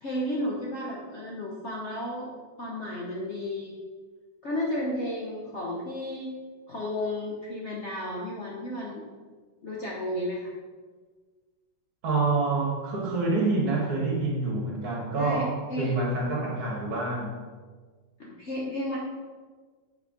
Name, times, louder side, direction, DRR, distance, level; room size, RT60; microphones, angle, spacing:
voice 1, 0.0-2.3 2.6-3.8 4.4-6.3 6.7-9.0 9.6-10.5 15.2-16.0 18.2-19.0, left 1 dB, 55° left, -3 dB, 0.8 m, -33 dB
voice 2, 12.0-17.4, right 3 dB, 60° right, -2 dB, 1.8 m, -27 dB
5.5 x 4.4 x 5.1 m, 1.4 s
omnidirectional pair, 2.0 m